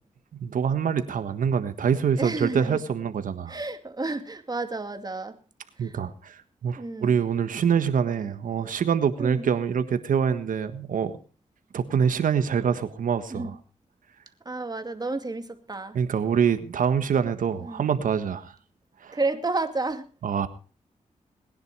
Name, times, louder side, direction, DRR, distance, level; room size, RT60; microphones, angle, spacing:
voice 1, 0.4-3.6 5.8-11.1 11.7-13.5 15.9-18.5 19.0-19.2 20.2-20.5, right 7 dB, 80° right, 1.5 m, -25 dB
voice 2, 2.2-2.8 3.5-5.4 5.8-6.0 6.8-7.2 9.2-9.5 13.3-13.5 14.4-16.0 17.6-17.9 19.1-20.1, right 3 dB, 30° right, 2.4 m, -31 dB
20.0 x 10.5 x 4.8 m
cardioid pair, 60°, 14 cm